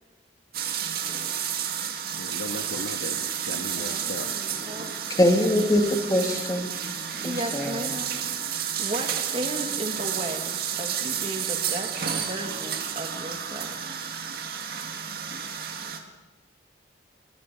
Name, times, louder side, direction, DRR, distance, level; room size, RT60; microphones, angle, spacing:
sound 1, 0.5-16.0, right 8 dB, 50° right, 1.9 m, -31 dB
voice 1, 2.1-4.3, left 2 dB, 80° left, 6 dB, 1.7 m, -37 dB
voice 2, 3.5-5.3 7.2-8.3 8.8-13.8, right 1 dB, 35° right, 3 dB, 2.4 m, -35 dB
voice 3, 5.2-6.7 7.2-8.0, left 1 dB, 20° left, 4 dB, 1.9 m, -23 dB
23.5 x 21.0 x 5.3 m, 1.2 s
head